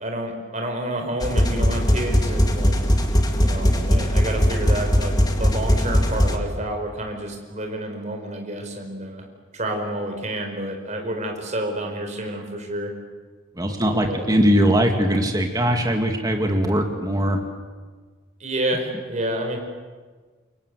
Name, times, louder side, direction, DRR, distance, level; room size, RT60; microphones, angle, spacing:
voice 1, 0.0-2.8 3.4-9.3 9.5-12.9 13.7-14.3 18.4-19.6, right 1 dB, 35° right, 3 dB, 4.8 m, -29 dB
sound 1, 1.2-6.4, equal, 20° left, 2.0 m, -20 dB
voice 2, 13.6-17.4, equal, 20° right, 3 dB, 2.2 m, -20 dB
28.5 x 23.5 x 8.3 m, 1.4 s
head